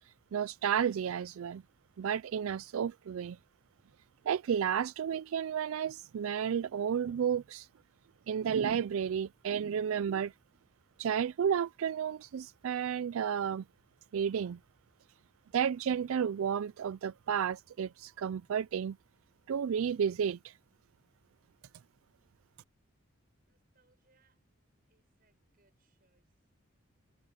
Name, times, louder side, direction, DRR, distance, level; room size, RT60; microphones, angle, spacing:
voice 1, 0.0-1.6 2.0-3.4 4.3-7.7 8.3-10.3 11.0-13.6 14.1-14.6 15.5-19.0 19.5-20.6, right 8 dB, 80° right, 0.3 m, -32 dB
voice 2, 23.5-24.4 24.9-26.3, right 3 dB, 45° right, 6.7 m, -73 dB
head